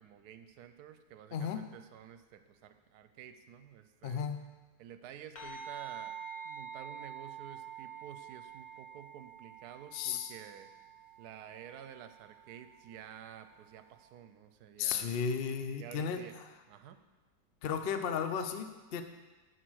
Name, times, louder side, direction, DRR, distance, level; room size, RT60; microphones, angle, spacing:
voice 1, 0.0-4.2 4.8-6.2 6.4-10.7 11.2-15.2 15.8-16.4 16.7-17.0, right 9 dB, 70° right, 10 dB, 1.1 m, -51 dB
voice 2, 1.3-1.6 4.0-4.4 9.9-10.3 14.8-16.2 17.6-19.0, left 7 dB, 75° left, 8 dB, 0.5 m, -34 dB
sound 1, 5.4-14.0, right 7 dB, 50° left, 2.1 m, -48 dB
12.5 x 4.7 x 6.3 m, 1.2 s
omnidirectional pair, 2.0 m